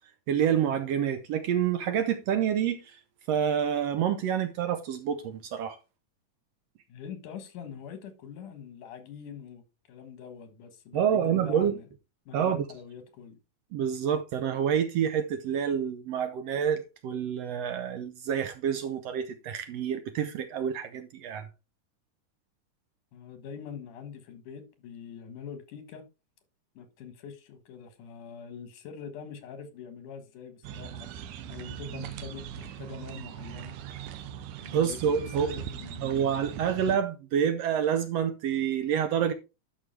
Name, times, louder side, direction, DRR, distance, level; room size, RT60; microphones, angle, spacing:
voice 1, 0.3-3.0 3.3-5.8 10.9-11.7 12.3-12.6 13.7-21.5 34.7-35.5 36.0-39.3, right 8 dB, 70° right, 1.6 m, -28 dB
voice 2, 6.9-11.9 12.3-13.4 23.1-26.0 26.8-31.1 31.5-33.8 34.6-36.3, left 7 dB, 80° left, 2.9 m, -44 dB
sound 1, 30.6-37.0, right 9 dB, 85° right, 2.3 m, -40 dB
11.0 x 6.1 x 3.2 m
omnidirectional pair, 3.5 m